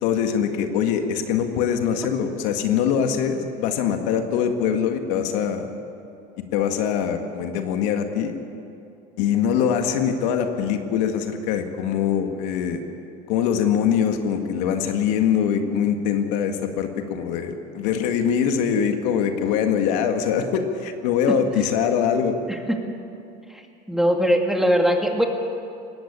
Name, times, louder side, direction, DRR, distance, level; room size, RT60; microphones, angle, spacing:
voice 1, 0.0-5.7 6.5-8.4 9.2-12.8 13.3-22.4, left 8 dB, 80° left, 6 dB, 1.8 m, -23 dB
voice 2, 22.5-23.0 23.5-23.6 23.9-25.2, equal, ahead, 3 dB, 2.2 m, -21 dB
19.5 x 16.0 x 8.7 m, 2.6 s
supercardioid pair, 110°, 21 cm